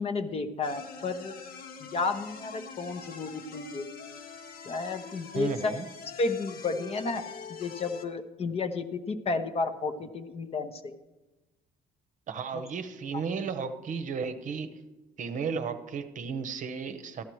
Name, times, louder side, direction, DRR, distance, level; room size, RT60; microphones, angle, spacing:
voice 1, 0.0-1.4 1.8-3.9 4.7-5.7 6.2-7.2 7.6-10.9, left 3 dB, 35° left, 8 dB, 0.8 m, -32 dB
sound 1, 0.6-8.0, left 5 dB, 60° left, 1.1 m, -44 dB
voice 2, 5.3-5.9 12.3-14.8 15.2-17.2, right 5 dB, 50° right, 9 dB, 0.8 m, -34 dB
14.0 x 11.5 x 3.1 m, 1.1 s
cardioid pair, 110°, 17 cm